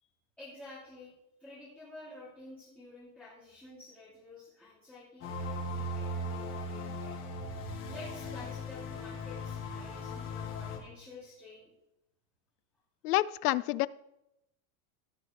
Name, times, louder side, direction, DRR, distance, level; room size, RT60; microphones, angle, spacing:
voice 1, 0.4-1.1 1.4-7.2 7.9-11.7, left 2 dB, 5° left, -11 dB, 2.7 m, -50 dB
sound 1, 5.2-10.8, left 1 dB, 25° left, 1.6 m, -38 dB
voice 2, 13.0-13.9, left 17 dB, 75° left, 19 dB, 0.6 m, -28 dB
16.0 x 7.1 x 3.3 m, 0.86 s
supercardioid pair, 175°, 46 cm